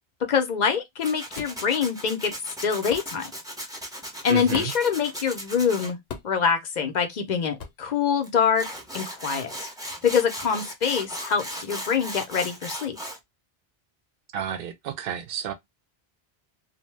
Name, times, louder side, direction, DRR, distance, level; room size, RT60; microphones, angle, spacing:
voice 1, 0.3-2.3 2.6-3.2 4.2-6.0 6.2-8.7 8.9-9.7 10.0-13.0, left 6 dB, 55° left, 0.6 m, -25 dB
Tools, 1.0-5.9 8.2-8.3 8.5-13.2, equal, 5° right, 0.5 m, -37 dB
sound 1, 1.4-1.6 2.9-3.1 4.5-4.9 6.1-6.4 7.6-7.8, left 6 dB, 85° left, 0.9 m, -37 dB
voice 2, 4.3-4.7 14.3-15.5, right 9 dB, 65° right, 0.7 m, -31 dB
2.6 x 2.1 x 3.2 m
omnidirectional pair, 1.0 m